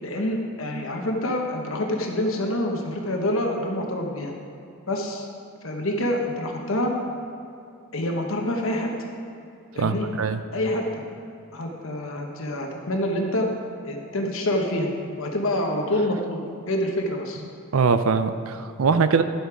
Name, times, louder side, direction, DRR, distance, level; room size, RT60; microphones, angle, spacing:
voice 1, 0.0-4.3 4.9-5.3 5.6-7.0 7.9-8.9 9.7-10.1 10.5-11.0 11.5-13.5 13.8-14.9 15.2-17.4, left 1 dB, 75° left, 1 dB, 1.1 m, -26 dB
voice 2, 9.8-10.4 17.7-19.2, right 5 dB, 85° right, 10 dB, 0.5 m, -22 dB
11.5 x 8.1 x 4.9 m, 2.7 s
head